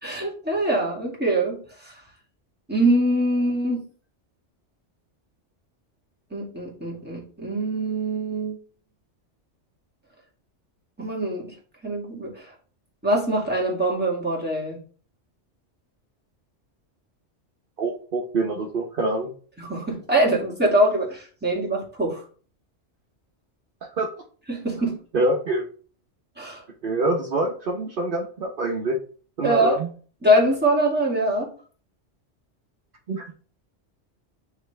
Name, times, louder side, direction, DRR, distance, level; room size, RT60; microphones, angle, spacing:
voice 1, 0.0-2.0 2.7-3.8 6.3-8.6 11.0-11.5 11.8-12.5 13.0-14.8 19.6-22.2 24.5-25.0 26.4-26.6 29.4-29.8 30.2-31.5, right 1 dB, 10° right, -5 dB, 2.1 m, -23 dB
voice 2, 17.8-19.3 24.0-24.1 25.1-25.7 26.8-29.0 29.4-29.9 33.1-33.3, right 2 dB, 50° right, -1 dB, 1.0 m, -25 dB
8.9 x 3.3 x 3.3 m, 0.41 s
omnidirectional pair, 1.2 m